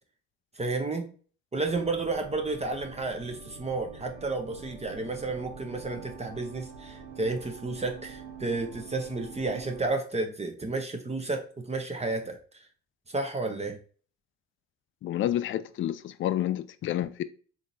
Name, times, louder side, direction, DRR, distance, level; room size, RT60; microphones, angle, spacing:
voice 1, 0.6-1.1 1.5-12.7 13.1-13.8, right 3 dB, 20° right, 0.7 m, -32 dB
sound 1, 1.6-9.9, right 5 dB, 90° right, 0.5 m, -46 dB
voice 2, 15.0-17.2, left 12 dB, 45° left, 0.4 m, -29 dB
3.6 x 2.8 x 2.6 m
hypercardioid pair, 55°, 30 cm